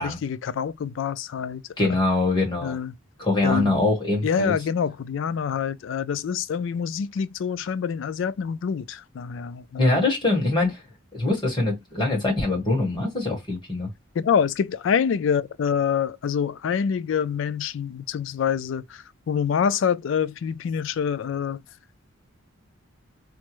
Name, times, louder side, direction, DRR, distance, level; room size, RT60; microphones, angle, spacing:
voice 1, 0.0-1.6 2.6-2.9 3.4-3.8 4.2-10.0 14.2-18.8 19.3-21.6, left 7 dB, 70° left, 0.3 m, -26 dB
voice 2, 1.8-2.8 3.2-4.5 9.8-10.8 11.1-13.9, left 2 dB, 20° left, 1.5 m, -23 dB
3.4 x 2.0 x 3.0 m
head